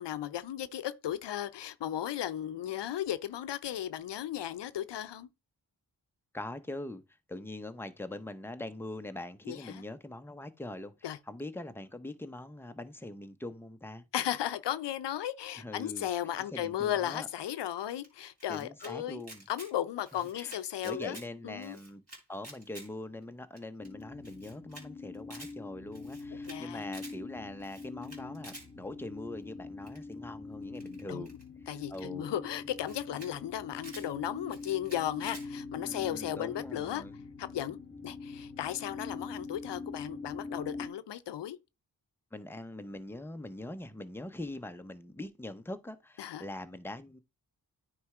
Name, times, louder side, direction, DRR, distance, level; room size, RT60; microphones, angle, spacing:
voice 1, 0.0-5.3 9.5-9.8 11.0-11.2 14.1-19.2 19.5-21.2 21.4-21.8 26.4-26.8 31.1-31.3 31.7-37.0 37.4-37.8 38.0-41.6 46.2-46.4, left 11 dB, 90° left, 0.6 m, -35 dB
voice 2, 6.3-7.0 7.3-14.0 15.6-17.3 18.5-19.4 20.3-20.6 20.8-22.0 22.3-31.3 31.7-32.3 35.7-37.2 42.3-47.2, left 1 dB, 5° left, 0.7 m, -43 dB
Camera, 18.0-18.9 19.2-19.7 20.0-21.3 21.6-22.9 23.2-23.3 23.6-23.7 23.8-23.9 24.2-24.8 25.1-25.5 25.9-26.6 26.9-27.1 27.6-28.7 29.9-30.1 30.7-32.0 32.6-32.7 32.8-33.3 33.6-34.1 34.5-35.5, right 1 dB, 35° right, 3.2 m, -50 dB
sound 1, 23.8-40.9, left 3 dB, 30° left, 1.4 m, -44 dB
9.4 x 3.3 x 4.8 m
cardioid pair, 65°, 41 cm